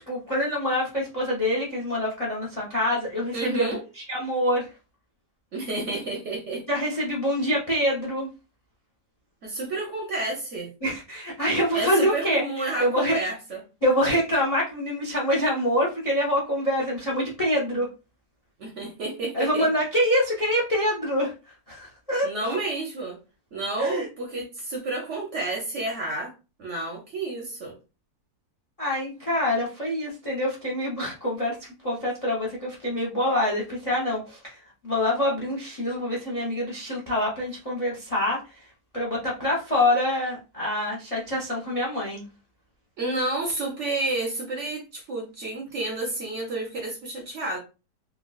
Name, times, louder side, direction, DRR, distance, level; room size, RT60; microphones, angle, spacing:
voice 1, 0.1-4.7 6.7-8.3 10.8-13.2 13.8-17.9 19.3-21.3 21.7-22.6 23.8-24.1 28.8-38.7 38.9-42.2, left 1 dB, 40° left, 0.5 m, -26 dB
voice 2, 3.3-3.8 5.5-6.7 9.4-10.7 11.7-13.6 18.6-19.7 22.2-23.2 23.5-26.3 26.6-27.7 43.0-47.6, right 2 dB, 55° right, 0.9 m, -30 dB
3.7 x 2.2 x 2.3 m
omnidirectional pair, 1.8 m